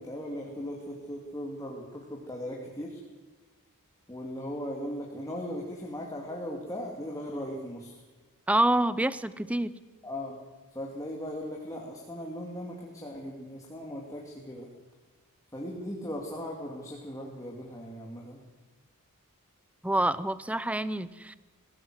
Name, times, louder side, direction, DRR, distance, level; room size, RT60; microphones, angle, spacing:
voice 1, 0.0-3.0 4.1-8.0 10.0-10.4 10.7-14.7 15.5-18.4, equal, 15° left, -1 dB, 2.6 m, -38 dB
voice 2, 8.5-9.7 19.8-21.4, right 1 dB, 5° right, 16 dB, 0.7 m, -27 dB
20.5 x 17.5 x 8.0 m, 1.3 s
head